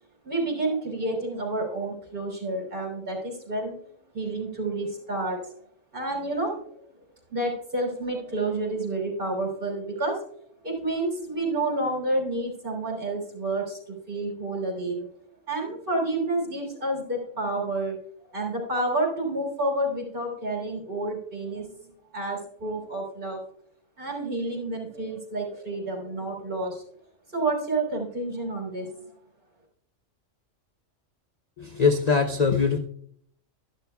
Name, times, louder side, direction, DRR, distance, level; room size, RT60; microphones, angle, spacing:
voice 1, 0.2-3.8 4.1-5.5 5.9-6.6 7.3-10.2 10.6-15.1 15.5-18.0 18.3-21.7 22.1-23.4 24.0-26.8 27.3-28.9, right 2 dB, 40° right, -1 dB, 3.6 m, -29 dB
voice 2, 31.6-32.8, left 5 dB, 45° left, 5 dB, 0.6 m, -22 dB
12.5 x 11.5 x 2.3 m, 0.64 s
omnidirectional pair, 1.3 m